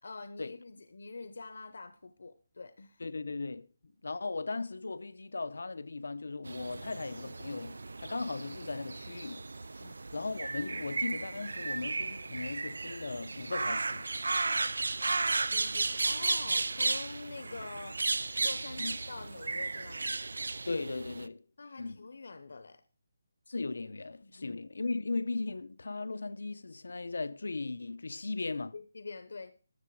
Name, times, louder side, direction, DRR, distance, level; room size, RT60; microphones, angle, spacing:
voice 1, 0.0-3.0 3.8-3.9 9.8-10.0 15.5-18.0 18.4-20.2 21.6-22.8 24.2-24.6 28.7-29.5, left 3 dB, 60° left, 0.9 m, -45 dB
voice 2, 3.0-3.7 4.0-9.5 10.1-14.1 18.8-19.0 20.7-21.5 21.8-22.0 23.5-28.7, left 3 dB, 85° left, 0.8 m, -37 dB
sound 1, 6.4-21.3, right 3 dB, 85° right, 0.6 m, -34 dB
13.0 x 7.5 x 4.8 m
hypercardioid pair, 180°, 0 cm